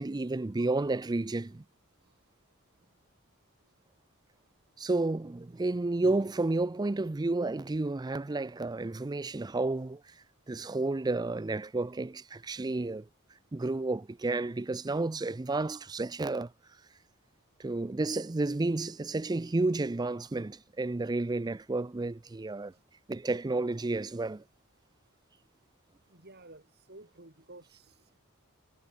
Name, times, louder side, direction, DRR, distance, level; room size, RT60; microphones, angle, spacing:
voice 1, 0.0-1.6 4.8-10.0 10.5-13.1 13.5-16.5 17.6-22.7 23.1-24.4, right 2 dB, 20° right, 0.4 m, -31 dB
voice 2, 26.1-27.9, right 2 dB, 50° right, 5.7 m, -52 dB
head